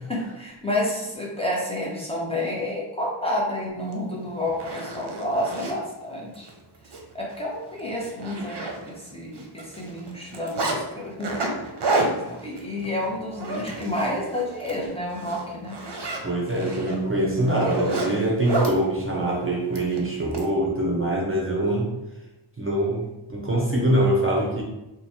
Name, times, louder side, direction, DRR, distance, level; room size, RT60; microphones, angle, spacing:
voice 1, 0.1-6.5 7.1-15.8, left 1 dB, 10° left, -4 dB, 0.9 m, -30 dB
Zipper (clothing), 3.9-4.0 4.4-5.8 6.3-6.5 6.8-7.0 7.3-7.4 7.8-9.1 9.4-10.8 11.2-14.1 14.5-14.8 15.1-18.8 19.7-20.4, right 2 dB, 60° right, 0.7 m, -29 dB
voice 2, 16.2-21.9 22.6-23.0 23.3-24.6, right 1 dB, 25° right, -3 dB, 0.8 m, -24 dB
3.0 x 2.4 x 4.2 m, 0.98 s
wide cardioid pair, 65°, 46 cm